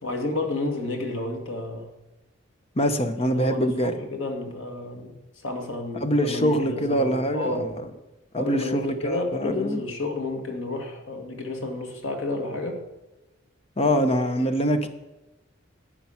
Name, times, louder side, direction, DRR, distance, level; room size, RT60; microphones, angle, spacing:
voice 1, 0.0-1.9 3.1-5.2 5.4-7.7 8.4-12.8 13.8-14.5, left 2 dB, 75° left, 3 dB, 2.1 m, -31 dB
voice 2, 2.8-4.0 6.0-7.7 8.3-9.8 13.8-14.9, equal, 30° left, 8 dB, 1.0 m, -24 dB
12.0 x 8.6 x 5.8 m, 1.0 s
head